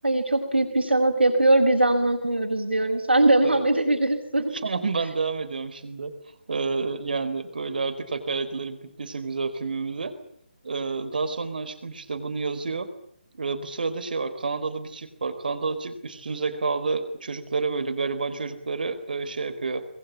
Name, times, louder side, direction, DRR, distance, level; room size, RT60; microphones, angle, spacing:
voice 1, 0.0-4.6, right 2 dB, 80° right, 2 dB, 5.5 m, -21 dB
voice 2, 4.5-6.1 6.5-10.2 10.6-12.9 13.4-19.9, right 4 dB, 55° right, 10 dB, 4.4 m, -29 dB
27.0 x 21.5 x 8.6 m, 0.67 s
figure-of-eight pair, 145°, 6 cm